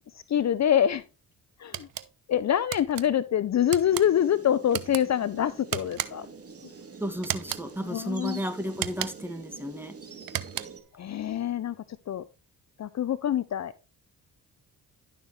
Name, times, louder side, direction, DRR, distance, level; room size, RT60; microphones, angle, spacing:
voice 1, 0.1-1.0 1.6-1.9 2.3-6.3 7.8-8.4 10.9-11.8 12.1-12.2 12.8-13.7, left 10 dB, 50° left, 0.6 m, -25 dB
sound 1, 1.7-2.1 2.7-3.0 3.7-4.1 4.7-5.0 5.7-6.3 7.2-7.7 8.7-9.3 10.2-10.9, right 12 dB, 70° right, 0.9 m, -34 dB
sound 2, 3.9-10.8, right 5 dB, 40° right, 2.0 m, -46 dB
voice 2, 7.0-10.0, equal, 5° right, 2.0 m, -33 dB
11.5 x 6.6 x 3.2 m
supercardioid pair, 65°, 36 cm